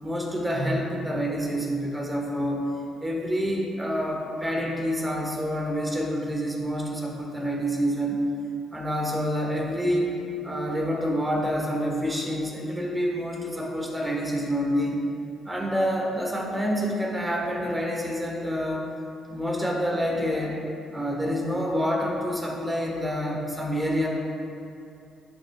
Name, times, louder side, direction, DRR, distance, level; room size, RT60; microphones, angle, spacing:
voice 1, 0.0-2.6 3.0-8.2 8.7-10.1 10.4-15.0 15.4-18.9 19.3-20.6 20.9-24.1, equal, 15° right, -1 dB, 1.5 m, -27 dB
11.0 x 6.3 x 2.4 m, 2.6 s
cardioid pair, 90°, 0 cm